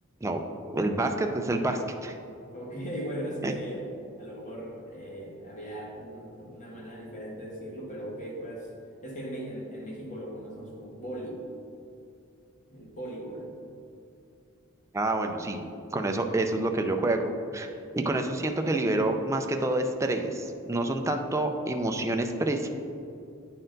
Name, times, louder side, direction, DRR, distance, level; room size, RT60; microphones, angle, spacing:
voice 1, 0.7-2.2 3.4-3.5 14.9-15.6 15.9-22.7, right 2 dB, 15° right, 4 dB, 0.4 m, -28 dB
voice 2, 2.5-3.9 4.2-8.7 9.0-11.4 12.7-13.6, right 1 dB, 35° left, -3 dB, 1.4 m, -38 dB
8.7 x 4.3 x 3.9 m, 2.6 s
head